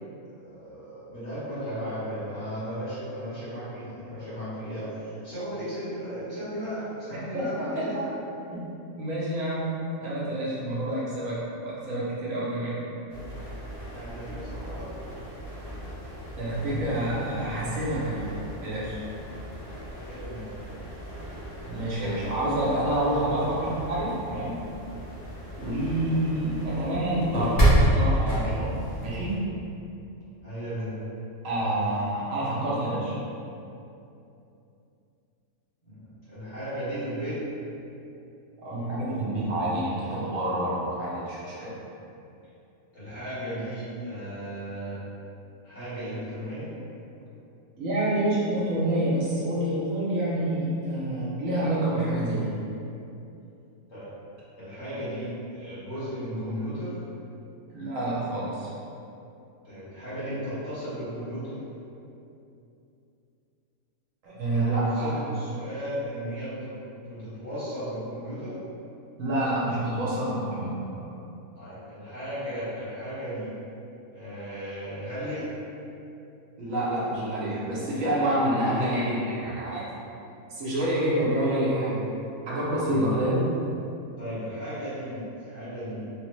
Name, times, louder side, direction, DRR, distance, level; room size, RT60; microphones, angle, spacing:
voice 1, 0.3-8.1 13.9-14.9 19.9-20.8 30.4-30.9 35.8-37.4 42.9-45.0 45.6-46.7 53.9-54.0 54.6-56.9 59.6-61.6 64.5-66.7 67.1-68.6 71.5-73.5 74.1-75.4 82.9-83.1 84.2-86.1, equal, 55° left, -13 dB, 1.6 m, -35 dB
voice 2, 7.3-8.0 8.5-8.6 9.0-12.7 16.4-18.3 18.6-19.0 21.7-24.6 25.6-29.4 31.4-33.1 38.6-41.7 47.8-52.5 57.7-58.7 64.2-65.2 69.2-71.0 76.6-79.8 80.5-82.0 82.5-83.4, right 1 dB, 70° right, -7 dB, 1.1 m, -28 dB
sound 1, 13.1-29.3, right 1 dB, 35° left, 0.7 m, -31 dB
3.2 x 2.1 x 3.1 m, 2.7 s
omnidirectional pair, 1.5 m